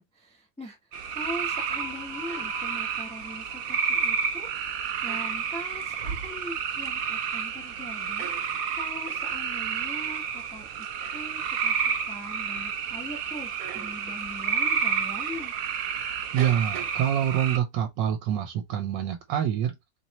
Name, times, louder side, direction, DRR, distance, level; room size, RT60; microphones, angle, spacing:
voice 1, 0.0-10.9 11.1-15.5, equal, 5° left, 0.7 m, -41 dB
sound 1, 0.9-17.6, right 7 dB, 65° right, 1.0 m, -30 dB
sound 2, 1.4-5.0, left 13 dB, 55° left, 0.9 m, -47 dB
voice 2, 16.3-19.7, right 10 dB, 80° right, 1.3 m, -26 dB
3.1 x 2.8 x 4.1 m
omnidirectional pair, 1.9 m